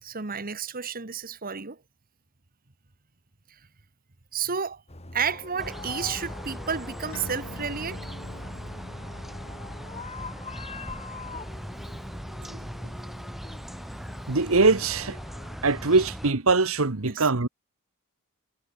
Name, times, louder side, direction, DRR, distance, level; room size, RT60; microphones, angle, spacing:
voice 1, 0.0-1.8 3.5-3.6 4.3-4.8 5.1-8.0 17.0-17.3, right 6 dB, 40° right, 1.4 m, -31 dB
sound 1, 4.9-15.6, left 4 dB, 30° left, 3.7 m, -44 dB
sound 2, 5.6-16.3, equal, ahead, 1.1 m, -39 dB
sound 3, 7.1-14.1, left 1 dB, 65° left, 5.2 m, -48 dB
voice 2, 14.3-15.2 15.6-17.5, right 3 dB, 70° right, 1.4 m, -22 dB
head